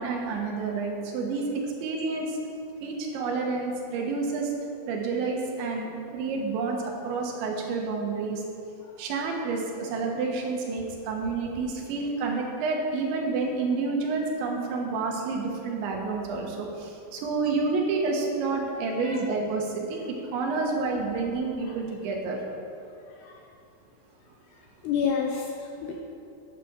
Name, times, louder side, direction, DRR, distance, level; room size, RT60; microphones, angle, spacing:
voice 1, 0.0-2.4 2.8-4.5 4.9-8.4 9.0-22.4, right 4 dB, 80° right, 0 dB, 3.5 m, -29 dB
voice 2, 23.1-23.4 24.8-26.0, left 6 dB, 80° left, 1 dB, 2.5 m, -30 dB
12.0 x 8.6 x 5.1 m, 2.6 s
omnidirectional pair, 5.4 m